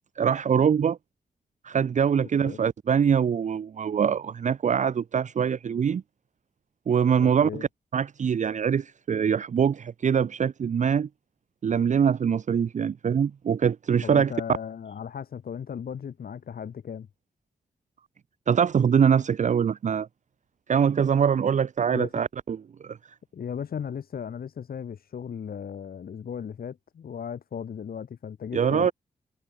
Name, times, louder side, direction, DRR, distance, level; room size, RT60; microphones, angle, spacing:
voice 1, 0.2-1.0 1.6-6.0 6.9-11.1 11.6-14.3 18.5-20.1 20.7-23.0 28.5-28.9, right 7 dB, 55° right, 0.6 m, -23 dB
voice 2, 2.2-2.6 7.2-7.6 14.0-17.1 21.9-22.2 23.3-28.9, left 7 dB, 80° left, 3.1 m, -36 dB
wide cardioid pair, 110°, 15 cm